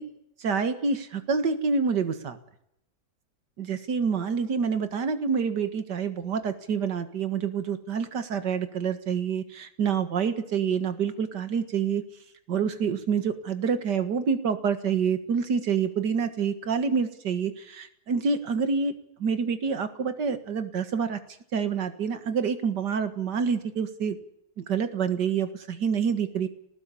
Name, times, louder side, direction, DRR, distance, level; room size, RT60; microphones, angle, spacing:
voice 1, 0.4-2.4 3.6-12.0 12.5-18.9 19.2-21.2 21.5-24.2 24.6-26.5, right 6 dB, 65° right, 10 dB, 2.3 m, -27 dB
20.0 x 19.0 x 8.5 m, 0.75 s
omnidirectional pair, 2.0 m